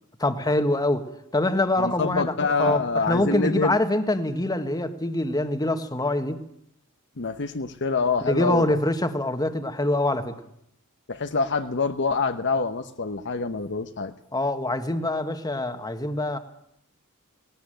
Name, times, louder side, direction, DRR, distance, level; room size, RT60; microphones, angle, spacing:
voice 1, 0.2-1.1 1.3-2.3 2.6-2.8 3.1-6.4 8.3-10.3 14.3-16.4, left 1 dB, 20° left, 8 dB, 1.5 m, -24 dB
voice 2, 1.8-3.7 7.2-8.8 11.1-14.1, left 4 dB, 55° left, 8 dB, 1.0 m, -26 dB
19.0 x 18.5 x 9.1 m, 0.75 s
head